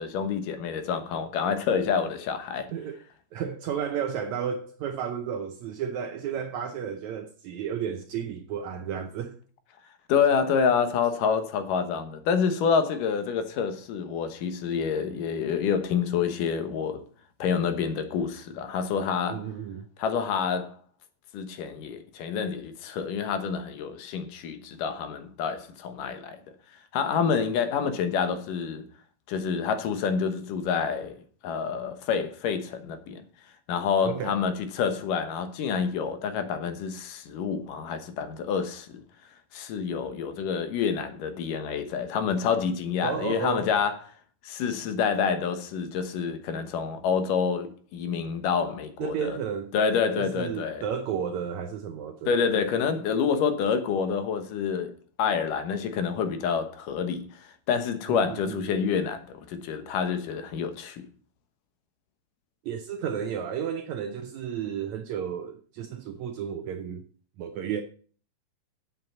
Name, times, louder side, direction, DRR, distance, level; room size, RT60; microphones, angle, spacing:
voice 1, 0.0-2.7 10.1-17.0 17.4-19.4 20.0-20.7 21.3-26.4 26.9-28.9 29.3-31.2 31.4-33.2 33.7-39.0 39.5-44.0 44.4-49.4 49.7-50.8 52.3-54.9 55.2-57.3 57.7-61.1, left 6 dB, 70° left, 2.7 m, -27 dB
voice 2, 3.3-9.4 19.3-19.9 34.0-34.4 43.0-43.7 49.0-49.7 50.1-52.5 58.1-58.7 62.7-67.0 67.4-67.8, right 8 dB, 75° right, 1.8 m, -32 dB
8.0 x 7.6 x 7.2 m
omnidirectional pair, 4.0 m